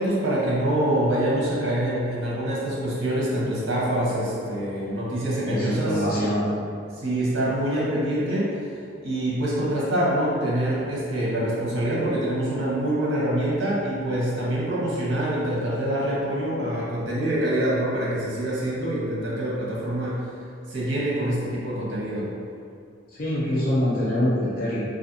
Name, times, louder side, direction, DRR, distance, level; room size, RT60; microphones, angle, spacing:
voice 1, 0.0-6.0 6.9-22.3, right 1 dB, 65° right, -7 dB, 0.8 m, -25 dB
voice 2, 5.5-6.5 23.1-24.8, left 1 dB, 50° left, -9 dB, 0.5 m, -24 dB
2.5 x 2.4 x 2.6 m, 2.3 s
head